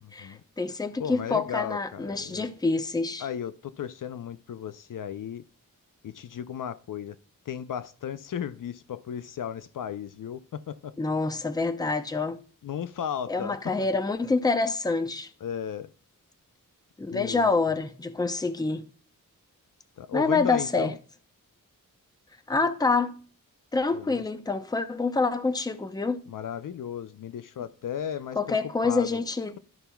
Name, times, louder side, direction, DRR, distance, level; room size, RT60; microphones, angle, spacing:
voice 1, 0.1-3.2 11.0-12.4 13.3-15.3 17.0-18.8 20.1-20.9 22.5-23.1 23.7-26.2 28.4-29.6, left 3 dB, 10° left, 0.5 m, -27 dB
voice 2, 1.0-2.5 3.2-5.4 6.0-7.2 7.5-11.0 12.6-13.9 15.4-15.9 17.1-17.5 20.0-21.0 23.9-24.2 26.3-28.6 28.8-29.2, left 9 dB, 70° left, 0.5 m, -35 dB
12.5 x 5.7 x 2.3 m
wide cardioid pair, 110°, 34 cm